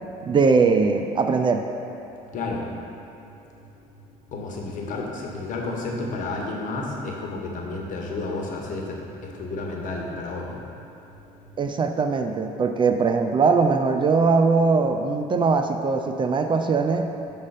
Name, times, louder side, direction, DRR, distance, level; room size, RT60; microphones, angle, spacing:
voice 1, 0.2-1.6 11.6-17.1, right 4 dB, 30° right, 6 dB, 0.4 m, -21 dB
voice 2, 2.3-2.6 4.3-10.6, left 3 dB, 55° left, -1 dB, 1.2 m, -31 dB
6.3 x 3.7 x 5.7 m, 2.8 s
supercardioid pair, 85°, 16 cm